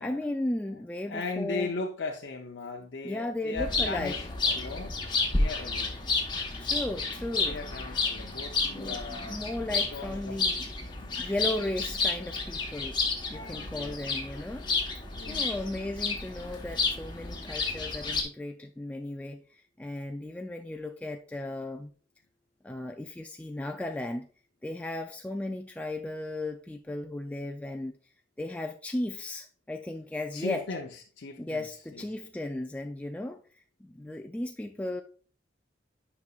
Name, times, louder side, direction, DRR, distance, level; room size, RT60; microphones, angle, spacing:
voice 1, 0.0-1.7 3.0-4.2 6.6-7.6 8.7-10.7 11.2-13.0 13.3-14.7 15.3-21.9 22.6-24.3 24.6-28.0 28.4-30.6 31.4-33.4 33.8-35.0, left 1 dB, 10° left, 0.3 m, -35 dB
voice 2, 1.1-5.9 7.3-10.3 11.0-11.1 13.3-14.1 15.1-15.6 30.3-31.7 31.9-32.0, left 3 dB, 70° left, 0.6 m, -38 dB
sound 1, 3.6-18.2, left 3 dB, 25° left, 1.1 m, -31 dB
9.4 x 5.3 x 2.4 m
head